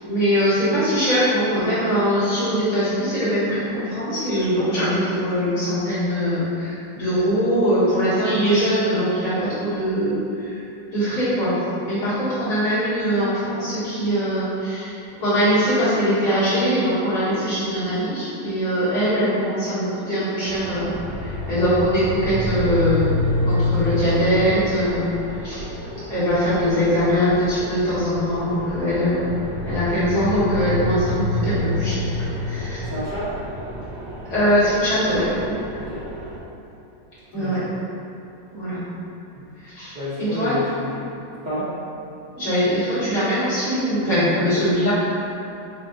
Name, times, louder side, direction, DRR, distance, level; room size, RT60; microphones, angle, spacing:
voice 1, 0.0-10.6 10.9-14.9 15.2-25.1 25.4-25.7 26.1-29.4 29.7-32.9 34.3-35.6 37.3-37.6 38.5-38.8 39.6-40.6 42.3-44.9, equal, 65° left, -13 dB, 2.3 m, -22 dB
sound 1, 20.4-36.4, left 1 dB, 60° right, 1.0 m, -28 dB
voice 2, 32.9-33.3 35.8-36.0 37.3-37.7 39.9-41.0 41.4-41.7 44.5-44.7, left 1 dB, 45° right, -12 dB, 0.6 m, -29 dB
7.5 x 2.6 x 2.6 m, 2.9 s
omnidirectional pair, 1.9 m